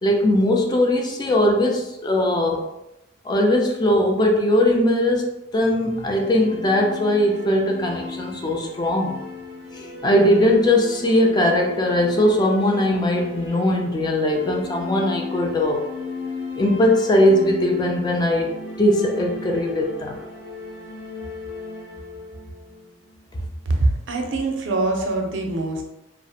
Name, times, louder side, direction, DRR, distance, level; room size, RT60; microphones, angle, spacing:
voice 1, 0.0-2.6 3.2-9.1 9.7-15.8 16.6-20.2, left 1 dB, 25° left, 1 dB, 0.3 m, -20 dB
sound 1, 5.8-23.7, left 3 dB, 80° left, 0.6 m, -36 dB
voice 2, 23.8-25.8, right 2 dB, 75° right, 3 dB, 0.5 m, -23 dB
2.4 x 2.0 x 2.7 m, 0.91 s
head